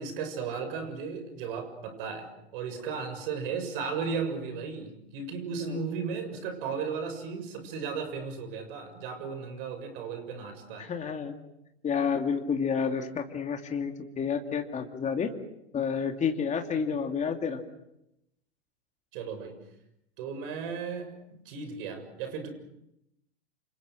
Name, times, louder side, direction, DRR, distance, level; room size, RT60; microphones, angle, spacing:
voice 1, 0.0-10.9 19.1-19.6 20.2-22.5, right 5 dB, 55° right, 8 dB, 6.9 m, -35 dB
voice 2, 10.8-11.3 11.8-15.3 15.7-17.6, left 6 dB, 20° left, 4 dB, 2.7 m, -30 dB
29.5 x 27.5 x 6.4 m, 0.82 s
hypercardioid pair, 100°, 33 cm